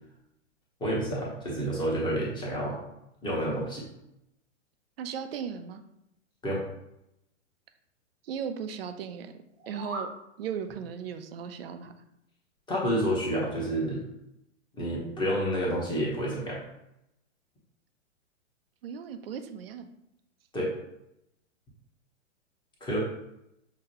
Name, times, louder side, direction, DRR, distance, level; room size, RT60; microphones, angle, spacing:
voice 1, 0.8-2.8 3.2-3.8 6.4-6.6 12.7-14.0 14.7-16.6 20.5-20.7 22.8-23.0, equal, 10° left, -5 dB, 0.9 m, -29 dB
voice 2, 5.0-5.8 8.2-9.3 9.7-10.1 10.4-11.9 18.8-19.9, right 7 dB, 50° right, 8 dB, 0.5 m, -36 dB
sound 1, 9.5-10.2, right 2 dB, 80° right, 1.1 m, -38 dB
5.9 x 2.2 x 2.9 m, 0.83 s
figure-of-eight pair, 110°, 38 cm